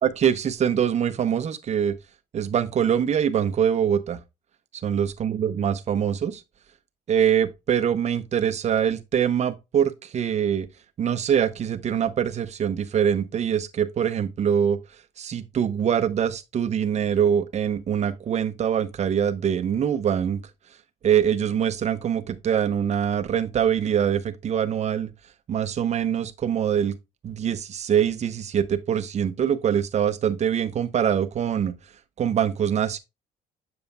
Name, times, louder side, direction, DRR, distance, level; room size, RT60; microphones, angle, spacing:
voice 1, 0.0-1.9 2.3-4.2 4.8-6.4 7.1-10.7 11.0-14.8 15.2-20.4 21.0-25.1 25.5-26.9 27.2-31.7 32.2-33.0, right 8 dB, 40° right, 0.7 m, -24 dB
7.0 x 6.9 x 2.2 m
cardioid pair, 110°, 17 cm